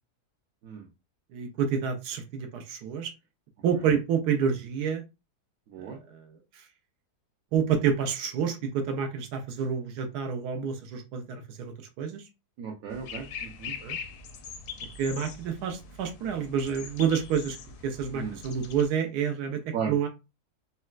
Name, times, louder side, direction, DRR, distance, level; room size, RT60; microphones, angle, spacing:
voice 1, 1.3-3.1 3.6-5.0 5.8-6.6 7.5-12.3 13.8-14.0 15.0-17.6 17.8-20.1, right 7 dB, 90° right, 5 dB, 1.2 m, -29 dB
voice 2, 12.6-13.7 18.1-18.4 19.7-19.9, right 6 dB, 70° right, 0 dB, 1.0 m, -35 dB
Song Thrush, 12.9-18.8, left 6 dB, 70° left, 0.8 m, -42 dB
4.1 x 2.1 x 2.4 m, 0.27 s
omnidirectional pair, 1.7 m